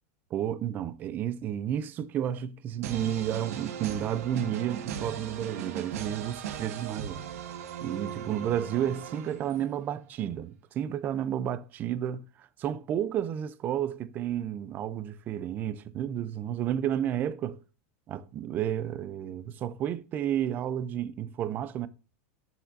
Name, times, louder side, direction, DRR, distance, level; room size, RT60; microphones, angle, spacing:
voice 1, 0.3-7.2 7.8-17.6 18.1-21.9, right 10 dB, 20° right, 0.5 m, -31 dB
sound 1, 2.8-9.8, right 9 dB, 75° right, 1.6 m, -38 dB
12.0 x 6.7 x 2.6 m
supercardioid pair, 170°, 8 cm